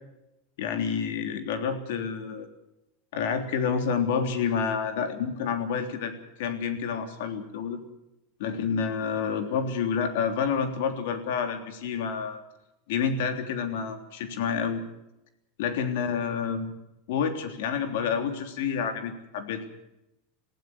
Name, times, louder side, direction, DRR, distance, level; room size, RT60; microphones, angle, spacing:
voice 1, 0.6-2.5 3.1-6.1 6.4-7.8 8.4-12.4 12.9-14.8 15.6-16.7 17.1-19.6, left 6 dB, 75° left, 7 dB, 3.3 m, -29 dB
19.5 x 15.5 x 9.6 m, 0.89 s
supercardioid pair, 140°, 0 cm